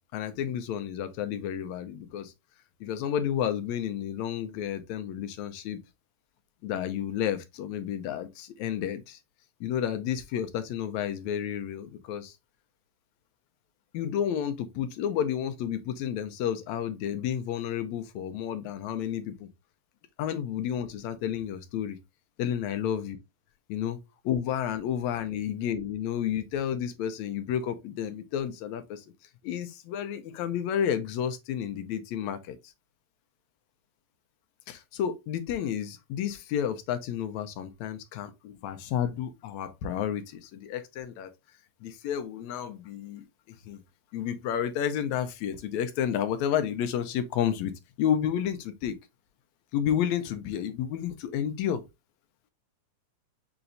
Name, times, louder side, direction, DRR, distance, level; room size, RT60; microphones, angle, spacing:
voice 1, 0.1-2.3 2.8-5.8 6.6-9.2 9.6-12.3 13.9-19.5 20.2-22.0 22.4-23.2 23.7-24.0 24.3-29.0 29.4-32.7 34.7-41.3 41.8-43.2 43.7-43.8 44.1-47.7 48.0-49.0 49.7-51.8, left 9 dB, 75° left, 2.0 m, -31 dB
6.9 x 3.0 x 2.5 m
omnidirectional pair, 3.4 m